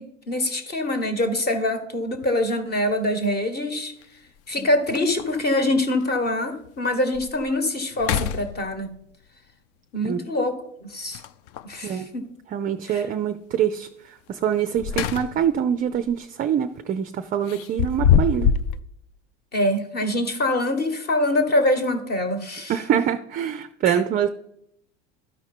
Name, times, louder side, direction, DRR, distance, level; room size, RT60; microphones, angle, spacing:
voice 1, 0.0-3.9 4.5-9.0 9.9-10.6 10.8-11.2 11.6-12.3 12.8-13.1 19.5-22.8 23.9-24.0, left 1 dB, 25° left, 9 dB, 1.3 m, -24 dB
sound 1, 2.1-2.3 4.0-4.1 4.5-4.6 4.9-5.4 6.0-6.1 6.6-6.7 7.1-7.5 7.9-9.0 11.1-11.8 14.5-15.6 16.0-16.2 17.5-18.8, left 8 dB, 45° left, 0.5 m, -24 dB
voice 2, 12.5-13.9 14.3-18.5 22.7-24.3, right 9 dB, 25° right, 8 dB, 0.4 m, -24 dB
12.5 x 4.8 x 4.3 m, 0.75 s
hypercardioid pair, 85°, 36 cm